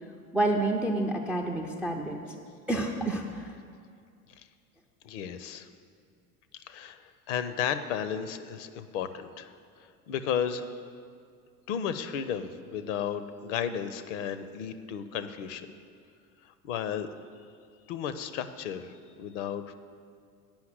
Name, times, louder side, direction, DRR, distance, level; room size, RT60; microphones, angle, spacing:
voice 1, 0.3-2.2 2.7-3.5, right 2 dB, 5° right, 2 dB, 0.4 m, -28 dB
voice 2, 5.0-5.7 6.7-10.6 11.7-15.7 16.6-17.1 17.9-18.9 19.2-19.7, left 8 dB, 50° left, 11 dB, 0.7 m, -33 dB
8.7 x 5.8 x 7.6 m, 2.3 s
figure-of-eight pair, 75°, 45 cm